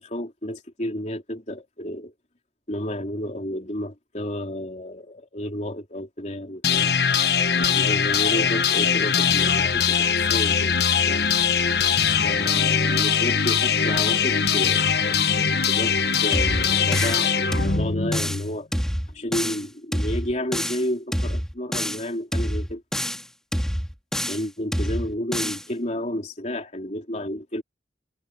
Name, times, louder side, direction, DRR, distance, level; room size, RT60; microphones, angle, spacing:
voice 1, 0.0-2.1 2.7-7.0 7.5-10.8 11.0-11.3 12.2-15.9 16.2-18.7 19.1-22.8 24.3-27.6, equal, 40° left, 3.6 m, -31 dB
sound 1, 6.6-18.6, left 7 dB, 60° left, 1.2 m, -21 dB
sound 2, 16.3-17.2 17.5-18.4 18.7-19.6 19.9-20.8 21.1-22.0 22.3-23.2 23.5-24.4 24.7-25.6, equal, 5° left, 3.3 m, -27 dB
head